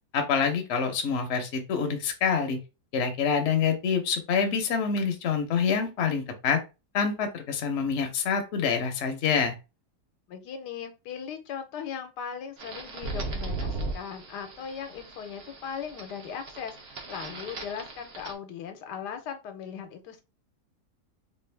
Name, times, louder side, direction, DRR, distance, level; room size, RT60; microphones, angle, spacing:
voice 1, 0.1-2.6 2.9-6.6 6.9-9.5, left 6 dB, 55° left, 4 dB, 0.9 m, -26 dB
voice 2, 10.3-20.2, left 7 dB, 85° left, 7 dB, 1.2 m, -38 dB
sound 1, 12.6-18.3, right 2 dB, 50° right, 0.8 m, -37 dB
3.4 x 2.5 x 3.2 m, 0.28 s
omnidirectional pair, 1.8 m